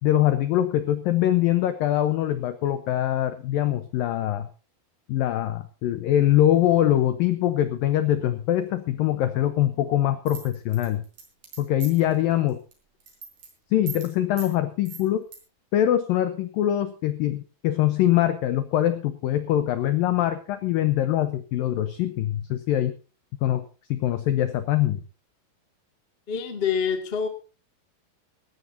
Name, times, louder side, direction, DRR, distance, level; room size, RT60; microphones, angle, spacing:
voice 1, 0.0-4.5 5.1-11.0 11.6-12.6 13.7-15.3 15.7-23.0 23.4-23.6 23.9-25.0, left 12 dB, 85° left, 11 dB, 2.0 m, -23 dB
sound 1, 10.3-12.1 12.5-12.7 13.0-13.5 13.9-14.1 14.4-14.5 14.9-15.4, right 5 dB, 45° right, 5.6 m, -39 dB
voice 2, 26.3-27.3, left 7 dB, 70° left, 6 dB, 0.5 m, -26 dB
19.0 x 16.0 x 2.7 m, 0.34 s
omnidirectional pair, 5.2 m